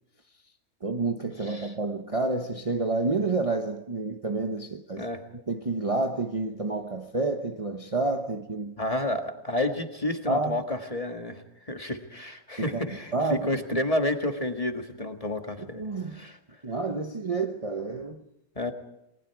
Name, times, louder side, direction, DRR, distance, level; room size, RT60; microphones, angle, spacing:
voice 1, 0.8-5.1 5.3-8.8 10.3-10.6 12.6-12.8 13.1-13.8 15.6-16.2 16.6-18.3, right 3 dB, 25° right, 1.0 m, -29 dB
voice 2, 1.4-1.7 5.0-5.2 8.8-15.8 16.1-16.4 18.6-18.7, left 1 dB, 25° left, 1.8 m, -30 dB
29.0 x 19.5 x 4.7 m
omnidirectional pair, 1.5 m